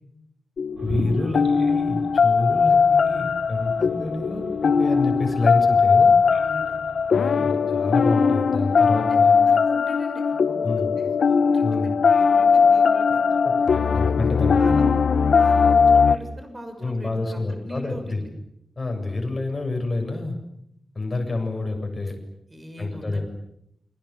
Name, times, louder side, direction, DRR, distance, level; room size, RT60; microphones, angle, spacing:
sound 1, 0.6-16.1, left 5 dB, 80° left, 1.3 m, -19 dB
sound 2, 0.7-7.2, right 2 dB, 90° right, 4.8 m, -39 dB
voice 1, 0.8-6.1 7.1-9.4 10.6-10.9 11.6-11.9 13.4-13.5 13.9-14.7 16.8-18.2 18.8-20.4 20.9-22.1 22.8-23.2, left 2 dB, 30° left, 3 dB, 7.6 m, -28 dB
voice 2, 6.3-6.8 7.2-7.6 9.0-14.1 14.6-14.8 15.4-18.3 22.5-23.2, equal, 20° right, 6 dB, 6.1 m, -41 dB
29.0 x 25.0 x 7.5 m, 0.76 s
wide cardioid pair, 145°, 0 cm